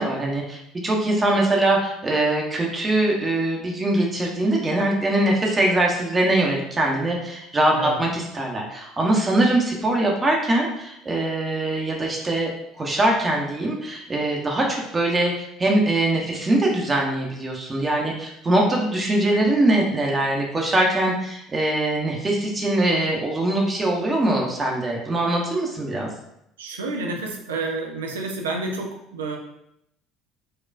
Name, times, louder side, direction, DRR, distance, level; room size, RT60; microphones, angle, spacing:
voice 1, 0.0-12.5 12.8-26.1, right 1 dB, 25° right, -1 dB, 0.7 m, -22 dB
voice 2, 26.6-29.4, right 3 dB, 80° right, 1 dB, 0.4 m, -29 dB
4.2 x 2.3 x 2.4 m, 0.77 s
figure-of-eight pair, 60°, 0 cm